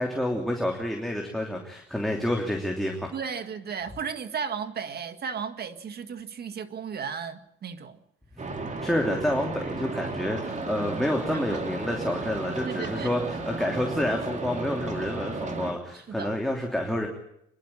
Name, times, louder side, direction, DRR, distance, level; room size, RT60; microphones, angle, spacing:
voice 1, 0.0-3.1 8.8-17.1, left 1 dB, ahead, 3.0 m, -28 dB
voice 2, 3.1-8.0 11.3-11.6 12.6-13.2 15.9-16.4, right 6 dB, 55° right, 1.9 m, -35 dB
sound 1, 8.4-15.7, right 3 dB, 35° right, 2.9 m, -34 dB
26.0 x 11.5 x 9.9 m
cardioid pair, 90°, 20 cm